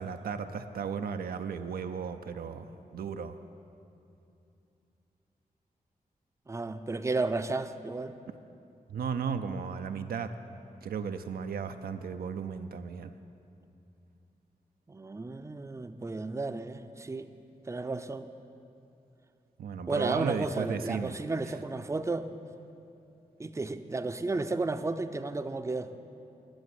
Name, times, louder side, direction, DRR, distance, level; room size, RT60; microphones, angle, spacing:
voice 1, 0.0-3.4 8.9-10.3 10.8-13.1 19.6-21.2 21.5-21.6, right 6 dB, 85° right, 8 dB, 0.5 m, -35 dB
voice 2, 6.5-8.2 14.9-17.3 17.7-18.3 19.9-22.3 23.4-25.9, right 3 dB, 20° right, 9 dB, 0.5 m, -33 dB
10.5 x 6.7 x 8.0 m, 2.7 s
cardioid pair, 60°, 15 cm